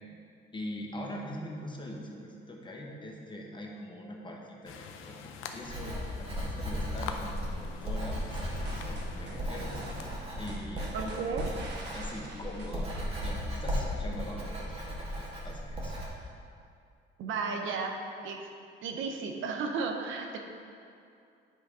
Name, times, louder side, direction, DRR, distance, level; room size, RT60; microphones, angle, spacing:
voice 1, 0.5-9.7 10.4-11.2 11.7-16.0, left 1 dB, 25° left, -1 dB, 1.1 m, -42 dB
sound 1, 4.7-10.2, left 6 dB, 90° left, 0.5 m, -44 dB
Writing, 5.6-16.1, equal, 30° right, 1.7 m, -36 dB
sound 2, 8.4-13.6, right 2 dB, 60° right, 1.3 m, -46 dB
voice 2, 10.9-11.5 17.2-18.0 18.2-18.5 18.8-20.4, right 4 dB, 80° right, 3 dB, 0.8 m, -33 dB
9.8 x 3.4 x 4.9 m, 2.5 s
cardioid pair, 90°, 20 cm